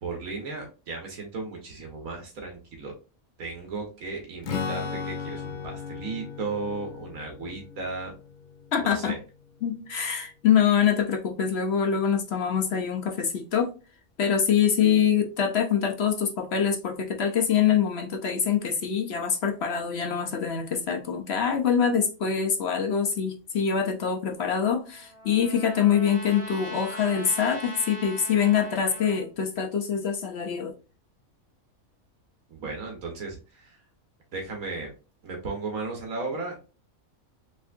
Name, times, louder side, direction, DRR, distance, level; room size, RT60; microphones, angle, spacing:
voice 1, 0.0-2.9 3.4-8.1 8.8-9.2 32.5-33.8 34.3-34.9 35.2-36.6, right 3 dB, 85° right, 1.6 m, -35 dB
Strum, 4.4-10.1, left 6 dB, 85° left, 0.4 m, -37 dB
voice 2, 8.7-9.2 9.6-13.7 14.2-30.7, left 7 dB, 60° left, 0.8 m, -24 dB
Trumpet, 24.6-29.3, equal, 50° right, 2.2 m, -40 dB
3.6 x 3.4 x 2.4 m
omnidirectional pair, 1.4 m